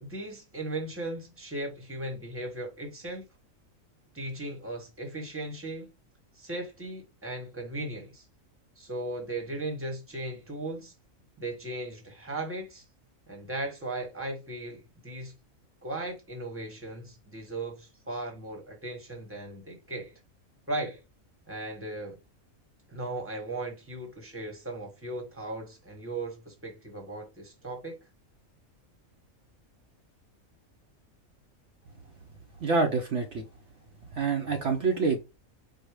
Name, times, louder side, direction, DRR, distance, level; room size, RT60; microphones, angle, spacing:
voice 1, 0.0-3.2 4.1-5.9 6.4-8.2 8.8-10.9 11.4-12.8 13.3-15.3 15.8-20.1 20.7-21.0 21.5-22.2 22.9-28.0, right 2 dB, 10° right, 1.2 m, -37 dB
voice 2, 32.6-33.5 34.1-35.2, right 4 dB, 60° right, 1.0 m, -26 dB
4.8 x 2.3 x 4.6 m
omnidirectional pair, 1.4 m